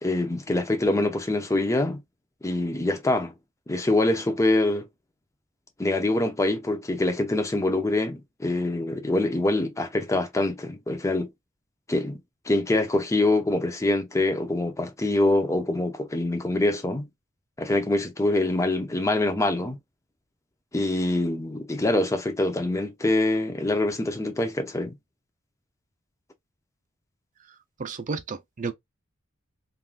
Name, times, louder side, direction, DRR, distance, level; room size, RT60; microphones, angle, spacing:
voice 1, 0.0-2.0 2.4-3.3 3.7-4.9 5.8-11.3 11.9-12.2 12.5-17.1 17.6-19.8 20.7-25.0, left 2 dB, 15° left, 0.6 m, -25 dB
voice 2, 27.8-28.7, right 4 dB, 40° right, 0.5 m, -32 dB
3.5 x 2.5 x 2.4 m
head